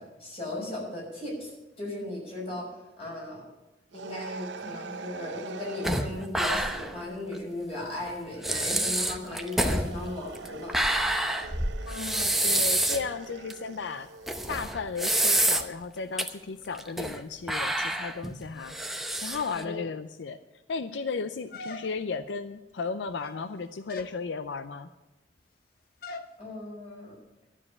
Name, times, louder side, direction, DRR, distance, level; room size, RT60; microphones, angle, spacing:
voice 1, 0.0-1.5 1.8-3.4 3.9-10.8 19.5-19.8 26.4-27.2, left 1 dB, 35° left, -3 dB, 5.9 m, -37 dB
sound 1, 3.9-6.1 9.2-14.7, right 5 dB, 85° right, 0.6 m, -43 dB
sound 2, 5.8-7.0 7.3-7.4 8.1-8.2 8.4-13.1 13.5-13.6 14.3-15.8 16.2-16.3 16.7-17.2 17.5-19.6, right 1 dB, ahead, 0.8 m, -27 dB
voice 2, 11.9-14.1 14.5-18.7 19.2-20.4 20.7-24.9, left 4 dB, 85° left, 11 dB, 0.5 m, -35 dB
sound 3, 21.5-22.3 23.1-23.5 23.9-24.2 26.0-26.3, left 3 dB, 55° left, 0.8 m, -41 dB
12.5 x 7.3 x 9.7 m, 1.0 s
head